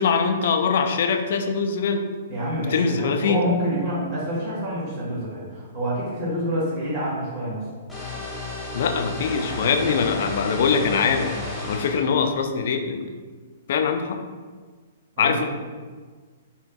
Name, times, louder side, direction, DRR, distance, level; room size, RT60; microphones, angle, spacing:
voice 1, 0.0-2.0 2.6-3.4 8.7-11.3 11.7-13.1 13.7-14.2 15.2-15.4, left 5 dB, 55° left, 6 dB, 0.4 m, -22 dB
voice 2, 2.3-7.6 15.2-15.4, equal, 45° right, -9 dB, 1.4 m, -27 dB
sound 1, 7.9-12.0, left 2 dB, ahead, 1.3 m, -32 dB
4.2 x 3.5 x 2.3 m, 1.5 s
figure-of-eight pair, 115°, 0 cm